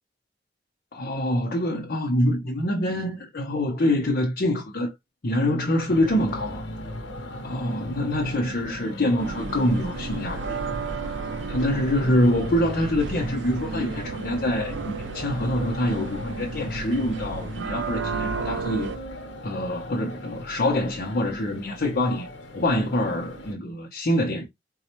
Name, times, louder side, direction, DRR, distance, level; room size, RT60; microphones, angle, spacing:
voice 1, 0.9-4.9 5.2-6.7 7.4-10.9 11.5-18.9 19.4-22.3 22.5-24.5, left 1 dB, 50° left, 0.7 m, -25 dB
sound 1, 5.9-23.5, equal, 90° left, 0.8 m, -37 dB
sound 2, 9.2-19.0, right 5 dB, 75° right, 0.4 m, -34 dB
4.1 x 2.3 x 2.9 m
head